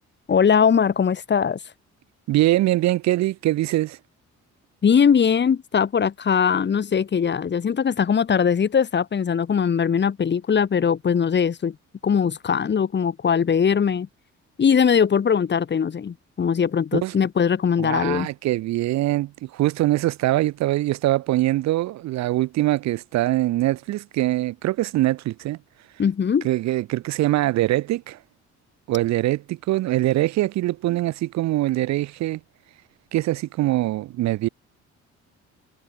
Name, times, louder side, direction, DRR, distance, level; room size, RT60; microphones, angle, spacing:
voice 1, 0.3-1.6 4.8-11.7 12.0-14.1 14.6-18.3 26.0-26.5, left 7 dB, 35° left, 1.1 m, -20 dB
voice 2, 2.3-4.0 17.0-17.1 17.8-25.6 26.4-28.2 28.9-32.4 33.1-34.5, right 16 dB, 65° right, 0.4 m, -23 dB
cardioid pair, 90°, 30 cm